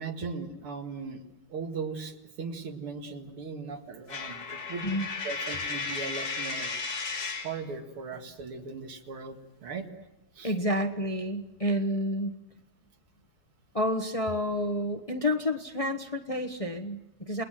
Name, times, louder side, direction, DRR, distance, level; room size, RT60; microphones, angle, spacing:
voice 1, 0.0-4.9 5.2-6.8 7.4-9.9 10.3-10.5, right 4 dB, 85° right, 4 dB, 2.9 m, -38 dB
Coin (dropping), 4.1-7.6, left 4 dB, 90° left, 4.7 m, -34 dB
voice 2, 10.4-12.4 13.7-17.4, left 1 dB, 20° left, 5 dB, 0.9 m, -29 dB
29.0 x 20.0 x 7.6 m, 0.96 s
omnidirectional pair, 2.3 m